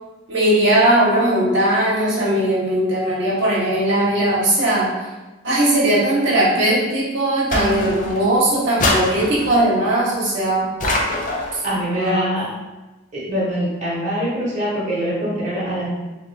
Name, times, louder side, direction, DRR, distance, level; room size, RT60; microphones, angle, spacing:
voice 1, 0.3-4.9 5.4-10.7 11.9-12.3, right 1 dB, 60° right, -6 dB, 1.0 m, -18 dB
sound 1, 7.5-8.3 8.8-9.7 10.8-11.6, left 2 dB, 40° left, 0.5 m, -23 dB
voice 2, 11.6-12.5 13.1-15.9, equal, 35° right, -7 dB, 1.0 m, -23 dB
3.7 x 2.9 x 3.3 m, 1.1 s
head